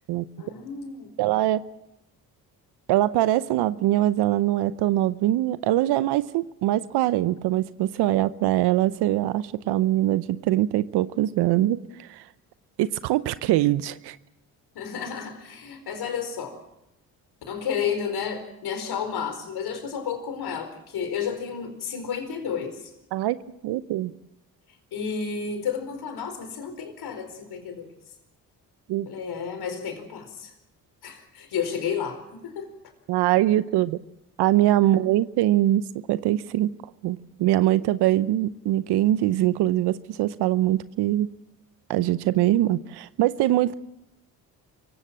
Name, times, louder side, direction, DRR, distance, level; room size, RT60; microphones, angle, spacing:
voice 1, 0.4-1.1 14.7-16.6 17.5-22.9 24.9-27.9 29.1-30.5 31.0-32.7, left 7 dB, 70° left, 7 dB, 4.7 m, -31 dB
voice 2, 1.2-1.6 2.9-12.2 12.8-14.2 23.1-23.4 23.6-24.1 28.9-29.1 33.1-34.0 34.4-35.8 36.1-36.7 37.0-41.3 41.9-43.7, right 14 dB, 75° right, 15 dB, 0.8 m, -23 dB
25.5 x 16.5 x 7.6 m, 0.89 s
supercardioid pair, 60°, 40 cm